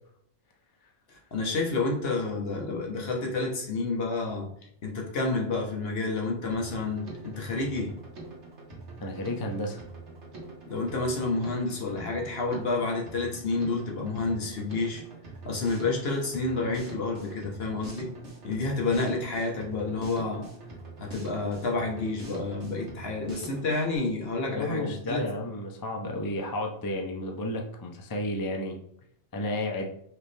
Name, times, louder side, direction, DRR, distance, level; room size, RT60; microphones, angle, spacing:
voice 1, 1.1-4.5 4.8-8.0 10.7-15.0 15.4-18.1 18.4-20.5 21.0-25.2, left 3 dB, 60° left, -1 dB, 1.2 m, -29 dB
Drum kit, 6.5-24.0, right 2 dB, 75° right, 1.6 m, -44 dB
voice 2, 9.0-9.8 24.4-28.8 29.3-29.9, left 1 dB, 30° left, 1 dB, 0.4 m, -32 dB
4.9 x 3.1 x 3.2 m, 0.69 s
omnidirectional pair, 1.2 m